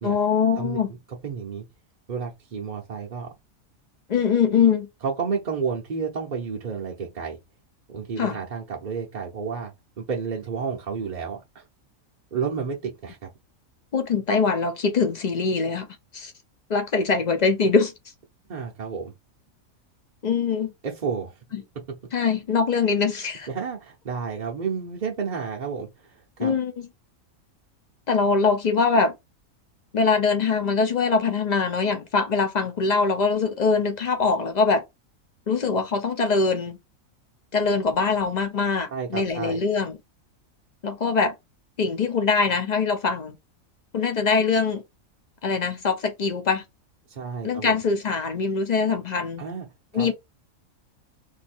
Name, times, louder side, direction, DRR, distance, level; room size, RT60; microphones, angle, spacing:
voice 1, 0.0-0.9 4.1-4.9 8.2-8.4 13.9-15.9 16.1-16.3 16.7-17.9 20.2-20.7 21.5-21.6 22.1-23.5 26.4-26.9 28.1-29.1 29.9-34.8 35.5-36.8 37.5-40.0 40.8-41.3 41.8-43.4 43.9-44.8 45.4-46.6 47.4-49.4 49.9-50.1, left 5 dB, 50° left, 0.5 m, -23 dB
voice 2, 1.2-1.7 2.1-3.3 5.0-7.4 7.9-9.7 10.0-11.6 12.3-13.3 18.5-19.1 20.8-21.3 23.5-26.5 38.9-39.6 47.1-47.7 49.4-49.7 49.9-50.1, right 6 dB, 45° right, 0.7 m, -31 dB
2.7 x 2.7 x 4.2 m
omnidirectional pair, 1.4 m